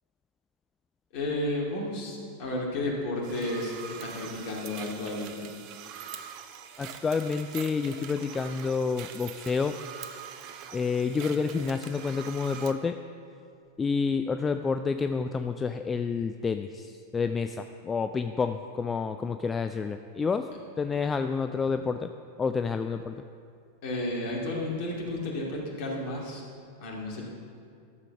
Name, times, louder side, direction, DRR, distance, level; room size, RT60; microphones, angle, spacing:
voice 1, 1.1-3.7 4.0-5.4 23.8-26.4 26.8-27.2, left 1 dB, 45° left, -2 dB, 2.6 m, -32 dB
sound 1, 3.2-12.7, right 8 dB, 40° right, 0.7 m, -43 dB
voice 2, 6.8-9.8 10.7-13.0 13.8-20.5 20.8-22.1 22.4-23.1, left 5 dB, 15° left, 9 dB, 0.3 m, -29 dB
12.5 x 6.8 x 5.9 m, 2.3 s
figure-of-eight pair, 90°, 0 cm